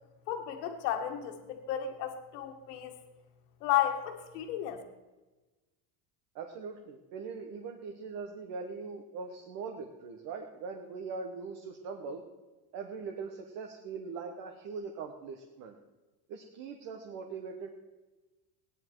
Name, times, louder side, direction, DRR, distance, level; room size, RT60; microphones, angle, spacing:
voice 1, 0.3-2.9 3.6-4.8, left 11 dB, 85° left, 5 dB, 1.9 m, -33 dB
voice 2, 6.3-12.2 12.7-15.7 16.3-17.7, right 5 dB, 40° right, 3 dB, 1.1 m, -41 dB
16.5 x 10.0 x 4.6 m, 1.2 s
cardioid pair, 175°, 47 cm